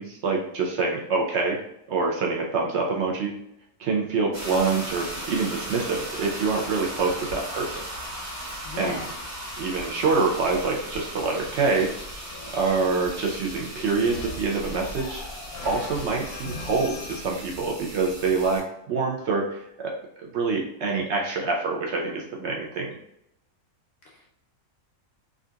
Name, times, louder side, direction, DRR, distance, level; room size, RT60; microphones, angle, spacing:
voice 1, 0.0-1.6 1.9-3.3 3.8-7.8 8.8-9.0 9.6-12.1 12.5-15.2 15.6-19.9 20.2-22.9, right 4 dB, 65° right, 0 dB, 0.8 m, -26 dB
sound 1, 4.3-18.6, equal, 35° right, 1.0 m, -37 dB
voice 2, 8.6-9.1 24.0-24.3, left 3 dB, 60° left, -2 dB, 0.7 m, -35 dB
sound 2, 10.2-17.2, left 2 dB, 85° left, 1.0 m, -41 dB
3.6 x 2.5 x 2.2 m, 0.80 s
omnidirectional pair, 1.4 m